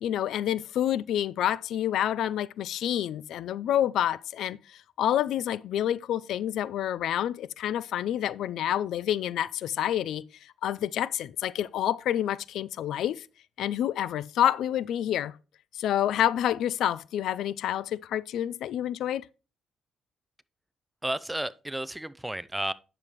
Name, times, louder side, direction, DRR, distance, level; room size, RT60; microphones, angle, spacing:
voice 1, 0.0-10.2 10.6-13.3 13.6-15.3 15.7-19.3, left 11 dB, 80° left, 0.3 m, -28 dB
voice 2, 21.0-22.7, right 1 dB, 5° right, 0.5 m, -32 dB
9.5 x 6.8 x 3.0 m
cardioid pair, 90°, 0 cm